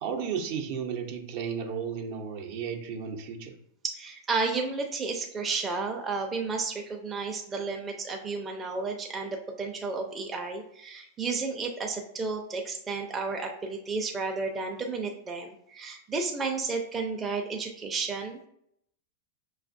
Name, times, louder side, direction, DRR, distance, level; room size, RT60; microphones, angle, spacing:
voice 1, 0.0-3.5, right 7 dB, 60° right, 3 dB, 0.7 m, -33 dB
voice 2, 3.8-18.5, right 4 dB, 20° right, 1 dB, 0.5 m, -32 dB
5.9 x 2.4 x 2.6 m, 0.73 s
hypercardioid pair, 110°, 0 cm